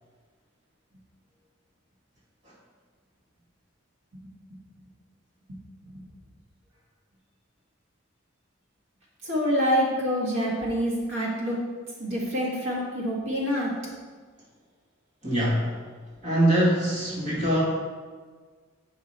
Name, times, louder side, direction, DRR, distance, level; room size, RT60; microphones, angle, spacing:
voice 1, 9.2-11.6 12.0-13.7, equal, 70° right, -5 dB, 1.8 m, -26 dB
voice 2, 15.2-15.7 16.2-17.6, right 1 dB, 35° right, -6 dB, 1.8 m, -23 dB
8.3 x 4.9 x 4.3 m, 1.5 s
head